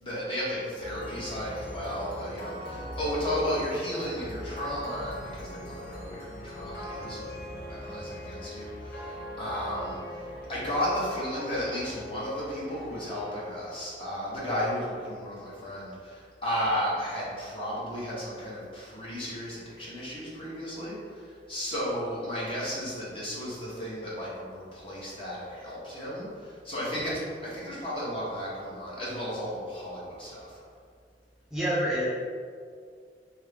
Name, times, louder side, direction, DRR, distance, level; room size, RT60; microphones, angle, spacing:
voice 1, 0.0-10.0 10.5-30.6, equal, 30° left, -7 dB, 1.0 m, -34 dB
sound 1, 0.8-14.1, equal, 55° left, 0.9 m, -41 dB
voice 2, 31.5-32.1, equal, 5° right, -9 dB, 0.4 m, -28 dB
2.9 x 2.6 x 3.4 m, 2.1 s
head